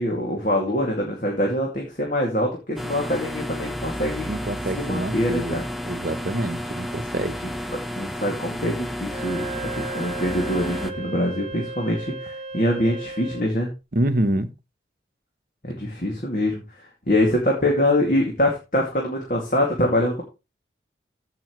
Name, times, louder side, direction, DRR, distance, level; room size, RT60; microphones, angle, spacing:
voice 1, 0.0-4.3 4.8-5.6 7.4-7.5 8.0-9.5 9.7-13.7 15.6-20.2, left 1 dB, 45° left, 2.3 m, -24 dB
sound 1, 2.8-10.9, equal, ahead, 0.7 m, -32 dB
voice 2, 4.3-5.6 5.8-7.3 13.9-14.5, right 1 dB, 50° right, 0.9 m, -26 dB
Wind instrument woodwind instrument, 9.0-13.5, right 3 dB, 35° right, 1.3 m, -35 dB
15.0 x 5.9 x 3.1 m
head